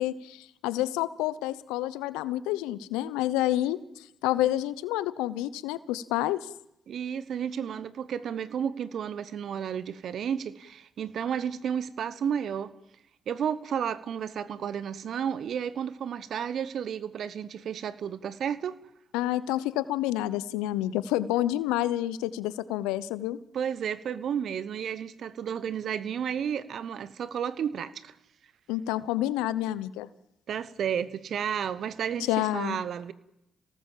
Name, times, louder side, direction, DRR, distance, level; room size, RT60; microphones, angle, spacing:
voice 1, 0.0-6.5 19.1-23.4 28.7-30.1 32.3-32.8, left 14 dB, 85° left, 0.8 m, -29 dB
voice 2, 6.9-12.7 13.3-18.8 23.5-28.1 30.5-33.1, right 8 dB, 65° right, 1.1 m, -32 dB
27.0 x 18.5 x 7.5 m
hypercardioid pair, 45°, 0 cm